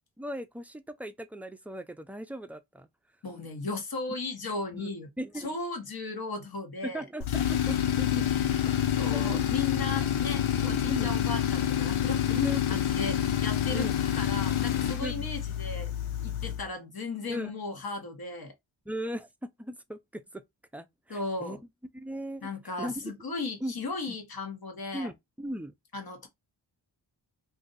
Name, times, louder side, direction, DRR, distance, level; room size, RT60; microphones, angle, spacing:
voice 1, 0.2-2.9 4.7-4.9 5.2-5.5 6.8-8.3 9.1-9.4 9.9-10.0 10.6-11.1 12.3-12.8 13.7-13.9 15.0-15.3 16.4-16.5 17.3-17.5 18.9-20.4 20.7-21.6 21.9-22.5 22.8-23.1 23.6-23.7 24.1-24.2 24.9-25.7, equal, 5° right, 0.5 m, -38 dB
voice 2, 3.2-5.1 5.4-7.0 8.3-8.5 8.9-13.9 14.2-15.9 16.2-18.5 21.1-21.6 22.4-25.1 25.9-26.3, left 3 dB, 50° left, 1.3 m, -36 dB
Tools, 7.2-16.7, left 10 dB, 85° left, 0.7 m, -28 dB
2.7 x 2.4 x 4.0 m
cardioid pair, 50°, 47 cm